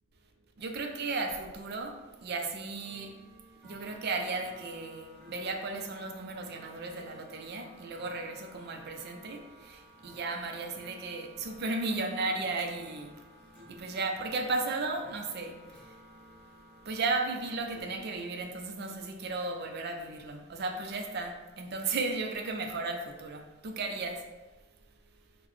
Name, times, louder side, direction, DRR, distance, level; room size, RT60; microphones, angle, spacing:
voice 1, 0.6-3.1 3.6-13.1 13.7-16.0 16.9-24.2, right 3 dB, 55° right, 3 dB, 0.4 m, -35 dB
sound 1, 1.6-17.8, equal, 5° left, 0.9 m, -55 dB
3.9 x 2.1 x 3.0 m, 1.2 s
head